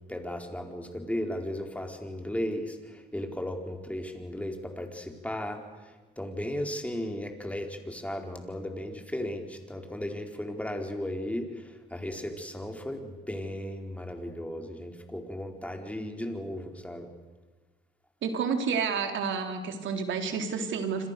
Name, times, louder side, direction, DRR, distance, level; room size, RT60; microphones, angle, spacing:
voice 1, 0.1-17.1, left 1 dB, 5° left, 3 dB, 4.6 m, -35 dB
voice 2, 18.2-21.1, right 6 dB, 75° right, 5 dB, 3.8 m, -30 dB
28.5 x 26.0 x 6.9 m, 1.3 s
cardioid pair, 90°, 20 cm